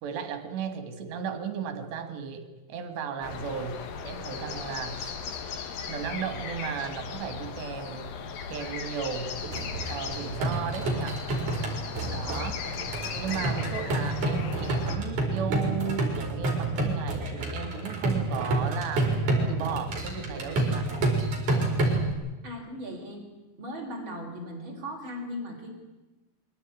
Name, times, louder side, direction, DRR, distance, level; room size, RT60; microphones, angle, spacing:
voice 1, 0.0-5.2 5.9-8.1 8.5-9.4 9.9-11.2 12.1-12.6 13.0-19.1 19.5-20.9, right 7 dB, 75° right, 8 dB, 4.0 m, -35 dB
sound 1, 3.2-15.0, left 6 dB, 65° left, 3.1 m, -37 dB
sound 2, 9.4-22.1, right 2 dB, 45° right, 6.0 m, -29 dB
voice 2, 22.4-23.2 23.6-25.7, equal, 30° right, 0 dB, 5.0 m, -37 dB
23.5 x 17.5 x 9.7 m, 1.1 s
omnidirectional pair, 5.1 m